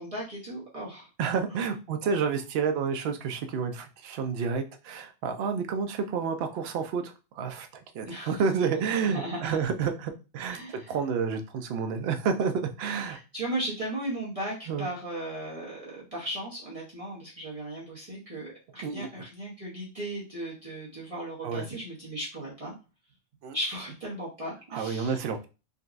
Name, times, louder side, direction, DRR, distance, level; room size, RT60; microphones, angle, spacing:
voice 1, 0.0-1.1 1.5-1.6 8.1-8.4 9.0-9.6 10.5-10.9 13.1-22.8 23.5-25.2, right 1 dB, 30° right, -7 dB, 1.0 m, -36 dB
voice 2, 1.2-7.7 7.9-12.5 12.8-13.2 14.7-14.9 18.8-19.1 21.4-21.7 23.4-23.6 24.7-25.5, right 6 dB, 65° right, 6 dB, 0.7 m, -30 dB
3.8 x 2.2 x 2.5 m, 0.31 s
omnidirectional pair, 1.3 m